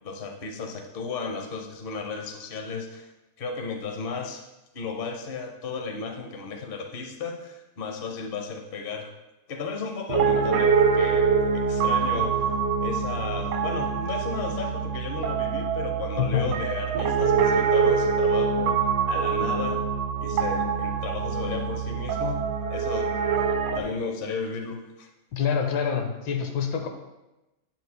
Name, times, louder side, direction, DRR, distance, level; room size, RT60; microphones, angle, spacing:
voice 1, 0.0-3.1 3.4-4.4 4.7-9.1 9.5-12.5 12.8-18.8 19.1-19.8 20.2-23.1 23.7-25.1, left 4 dB, 50° left, 2 dB, 0.6 m, -34 dB
Piano, 10.1-23.8, right 6 dB, 70° right, 1.2 m, -24 dB
voice 2, 16.2-16.5 25.3-26.9, left 7 dB, 75° left, 5 dB, 1.6 m, -26 dB
9.3 x 8.0 x 2.2 m, 1.0 s
omnidirectional pair, 2.2 m